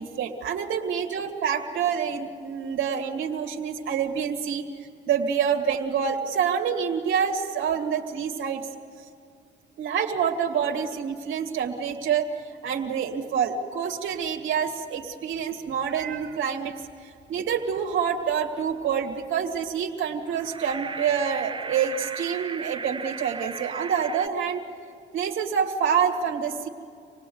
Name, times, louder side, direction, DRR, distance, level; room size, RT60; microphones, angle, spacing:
voice 1, 0.0-8.6 9.8-12.3 12.6-16.7 17.0-24.6 25.1-26.7, right 7 dB, 80° right, 3 dB, 2.3 m, -27 dB
sound 1, 20.3-24.3, right 4 dB, 25° right, 0.8 m, -36 dB
26.5 x 18.5 x 9.4 m, 2.5 s
cardioid pair, 90°, 20 cm